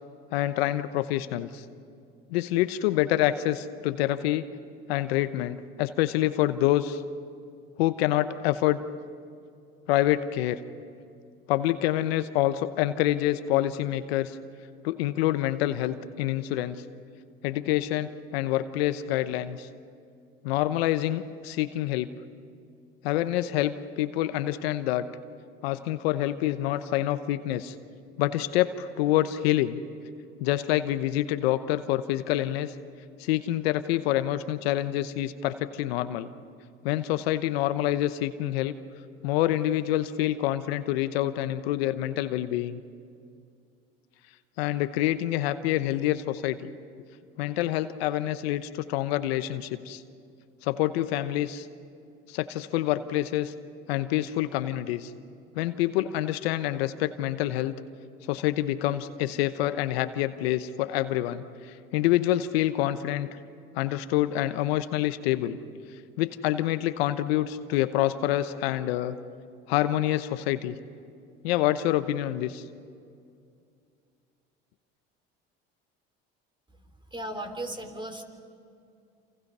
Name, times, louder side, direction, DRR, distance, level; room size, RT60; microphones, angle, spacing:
voice 1, 0.3-1.6 2.3-4.5 4.9-7.0 7.8-8.8 9.9-10.6 11.5-14.4 14.8-16.8 17.4-19.7 20.4-22.1 23.0-25.1 25.6-27.7 28.2-29.8 30.4-32.7 33.2-36.3 36.8-38.7 39.2-42.8 44.6-46.7 47.4-50.0 50.6-51.7 52.3-53.5 53.9-55.1 55.5-57.8 58.3-63.3 63.7-65.6 66.2-69.2 69.7-70.8 71.4-72.6, left 14 dB, 85° left, 11 dB, 1.0 m, -27 dB
voice 2, 77.1-78.2, right 1 dB, 15° right, 6 dB, 3.6 m, -36 dB
28.5 x 27.5 x 5.5 m, 2.4 s
hypercardioid pair, 70°, 30 cm